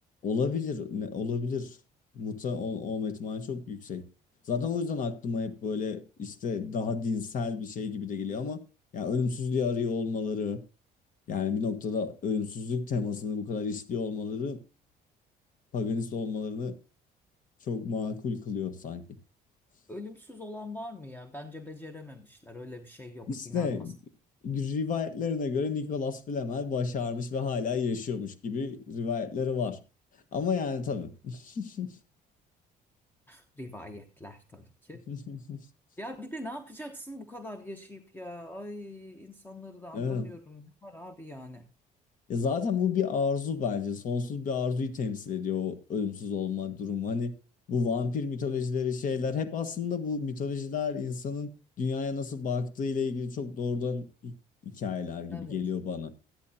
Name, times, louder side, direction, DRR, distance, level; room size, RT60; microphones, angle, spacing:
voice 1, 0.2-1.8 2.1-4.0 4.5-8.6 8.9-10.6 11.3-14.6 15.7-16.8 17.6-19.0 23.3-24.0 24.4-29.8 30.3-32.0 35.1-35.6 39.9-40.3 42.3-47.3 47.7-51.5 51.8-54.3 54.6-56.1, left 5 dB, 50° left, 1.4 m, -31 dB
voice 2, 19.9-23.9 33.3-35.0 36.0-41.7 55.3-55.6, left 1 dB, 10° left, 1.1 m, -43 dB
13.5 x 11.0 x 2.8 m
cardioid pair, 110°, 17 cm